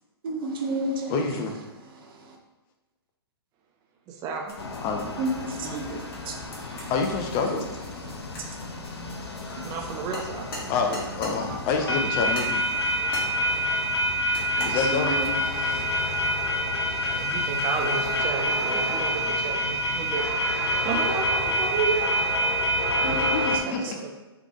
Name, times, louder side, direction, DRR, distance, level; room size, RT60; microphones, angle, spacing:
voice 1, 0.2-1.2 2.0-2.4 5.2-6.9 8.1-8.2 9.6-9.7 11.4-11.6 11.8-11.9 14.6-15.3 15.5-15.8 21.0-21.1 23.0-23.3 23.6-23.9, right 2 dB, 55° right, 1 dB, 0.8 m, -32 dB
voice 2, 1.1-1.6 4.8-5.0 6.9-7.7 10.7-12.6 14.6-15.1 23.2-23.8, left 4 dB, 30° left, 3 dB, 0.5 m, -27 dB
voice 3, 4.1-4.5 9.6-10.5 15.6-15.9 17.0-22.6 23.0-23.1 23.6-24.1, right 5 dB, 25° right, 2 dB, 0.5 m, -32 dB
sound 1, 4.5-11.4 12.3-13.4 14.3-14.8, left 1 dB, 60° left, 1.5 m, -40 dB
sound 2, 4.6-23.6, equal, 75° left, 0.6 m, -27 dB
3.5 x 3.3 x 3.6 m, 1.1 s
figure-of-eight pair, 115°, 14 cm